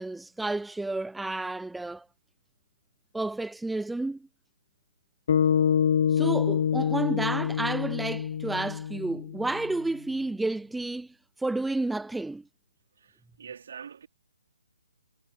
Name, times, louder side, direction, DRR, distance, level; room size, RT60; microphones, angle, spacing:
voice 1, 0.0-2.0 3.1-4.2 6.1-11.1 11.4-12.4, right 2 dB, 5° right, 0.7 m, -31 dB
sound 1, 5.3-9.7, left 8 dB, 55° left, 1.0 m, -26 dB
voice 2, 13.0-14.1, right 7 dB, 60° right, 3.1 m, -44 dB
hypercardioid pair, 145°, 0 cm